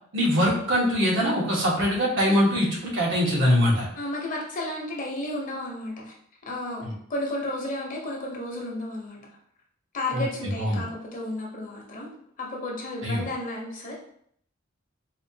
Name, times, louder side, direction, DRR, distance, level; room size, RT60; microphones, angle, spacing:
voice 1, 0.1-3.9 6.8-6.9 10.1-10.2 10.6-10.8 13.0-13.2, equal, 65° right, -4 dB, 1.2 m, -22 dB
voice 2, 4.0-6.1 6.5-6.8 7.1-9.2 9.9-12.1 12.4-13.9, left 1 dB, 40° left, -2 dB, 0.8 m, -32 dB
4.2 x 2.4 x 2.8 m, 0.65 s
head